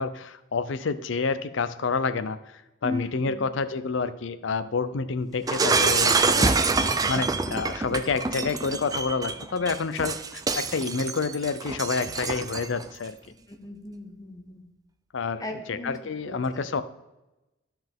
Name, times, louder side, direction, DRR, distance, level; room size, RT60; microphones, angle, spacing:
voice 1, 0.0-6.5 7.1-13.2 15.1-16.8, left 4 dB, 65° left, 13 dB, 0.5 m, -29 dB
voice 2, 2.8-3.4 13.5-14.7 15.4-16.7, left 2 dB, 20° left, 3 dB, 1.1 m, -37 dB
Shatter, 5.5-12.8, right 4 dB, 20° right, 0.4 m, -26 dB
12.0 x 5.7 x 3.6 m, 0.99 s
head